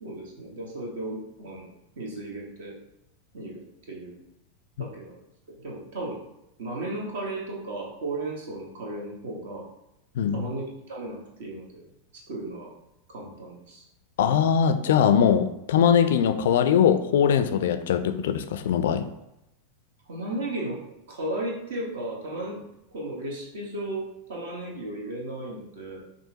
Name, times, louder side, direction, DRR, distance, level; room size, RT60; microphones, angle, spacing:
voice 1, 0.0-1.7 2.0-2.8 3.3-4.2 4.8-5.2 5.5-6.2 6.6-9.7 10.3-11.9 12.1-12.7 13.1-13.8 20.1-22.6 22.9-26.1, right 2 dB, 60° right, -1 dB, 1.0 m, -35 dB
voice 2, 10.2-10.5 14.2-19.1, left 8 dB, 60° left, 9 dB, 0.3 m, -21 dB
5.4 x 2.6 x 2.7 m, 0.86 s
figure-of-eight pair, 90°, 0 cm